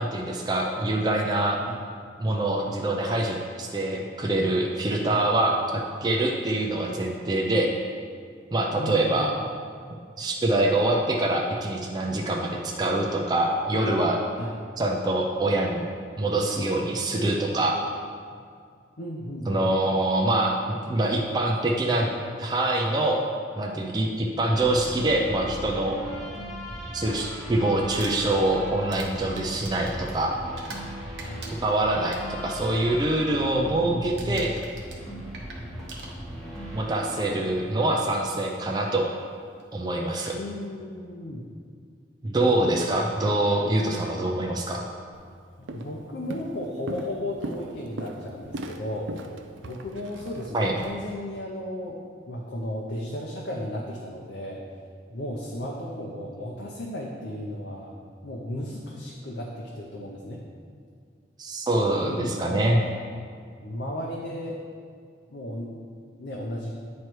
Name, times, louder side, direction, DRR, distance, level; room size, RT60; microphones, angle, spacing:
voice 1, 0.0-1.6 2.2-7.7 8.5-9.3 10.2-14.2 14.8-15.8 16.2-17.8 19.5-22.1 22.4-23.2 23.6-26.0 26.9-30.3 31.6-34.5 36.7-39.1 39.7-40.4 42.2-44.8 50.5-50.8 61.4-62.8, right 1 dB, 20° right, 0 dB, 0.4 m, -25 dB
voice 2, 8.7-9.3 14.4-14.6 19.0-19.6 31.2-31.5 33.5-34.4 40.3-41.4 45.6-49.1 49.6-52.0 52.3-54.6 55.1-57.9 58.2-60.4 62.0-62.9 63.6-64.6 65.3-65.8 66.2-66.7, left 1 dB, 70° left, -3 dB, 0.7 m, -34 dB
sound 1, 24.6-37.4, equal, 5° left, 1.0 m, -38 dB
Crumpling crinkling, 27.8-30.9 31.2-32.6 33.0-33.3 33.5-33.9 34.2-36.6 37.5-37.6 39.6-39.7 40.1-40.4, right 3 dB, 65° right, 0.9 m, -44 dB
Walk footsteps, 45.1-45.3 45.7-46.0 46.3-50.9, right 2 dB, 85° right, 0.5 m, -38 dB
9.2 x 3.2 x 4.5 m, 2.2 s
head